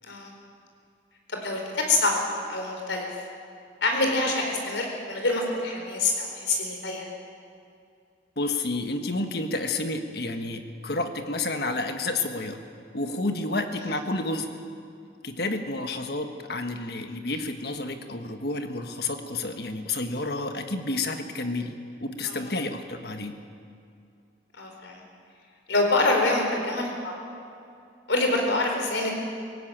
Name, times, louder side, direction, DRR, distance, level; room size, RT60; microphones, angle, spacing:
voice 1, 1.3-2.2 2.5-3.1 3.8-7.1 22.3-22.4 24.6-25.0 25.7-27.2 28.1-29.1, left 2 dB, 85° left, 2 dB, 4.3 m, -26 dB
voice 2, 8.4-12.6 12.9-14.5 15.2-21.7 22.0-23.4, left 2 dB, 60° left, 6 dB, 1.5 m, -30 dB
18.5 x 16.5 x 9.0 m, 2.4 s
head